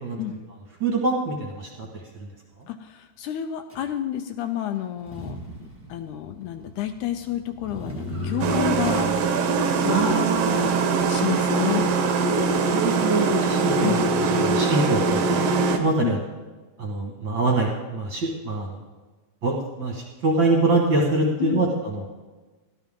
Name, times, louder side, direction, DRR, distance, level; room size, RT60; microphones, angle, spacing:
voice 1, 0.8-1.7 9.9-11.0 12.7-14.0 14.3-15.4 15.8-16.2 16.8-18.8 19.4-22.1, right 3 dB, 45° right, -2 dB, 1.8 m, -24 dB
voice 2, 2.7-9.1 9.8-10.2 10.5-11.9 13.8-14.0 16.0-16.1 21.4-21.7, left 11 dB, 80° left, 8 dB, 1.9 m, -30 dB
Motor vehicle (road), 3.7-3.8 5.0-9.3, equal, 20° right, 0.3 m, -36 dB
sound 1, 8.4-15.8, right 4 dB, 70° right, 1.6 m, -22 dB
13.5 x 12.0 x 3.7 m, 1.3 s
omnidirectional pair, 3.7 m